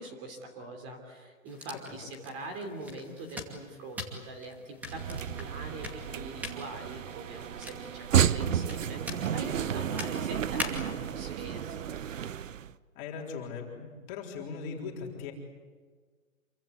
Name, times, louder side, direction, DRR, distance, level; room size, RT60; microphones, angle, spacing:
voice 1, 0.0-11.7, right 2 dB, 25° right, 5 dB, 3.2 m, -43 dB
sound 1, 1.5-11.1, left 1 dB, 5° right, 2.5 m, -44 dB
voice 2, 1.7-2.2 13.0-15.3, left 5 dB, 25° left, -1 dB, 4.0 m, -40 dB
sound 2, 4.8-12.7, right 9 dB, 65° right, 1.0 m, -32 dB
28.0 x 24.5 x 8.2 m, 1.5 s
hypercardioid pair, 170°, 41 cm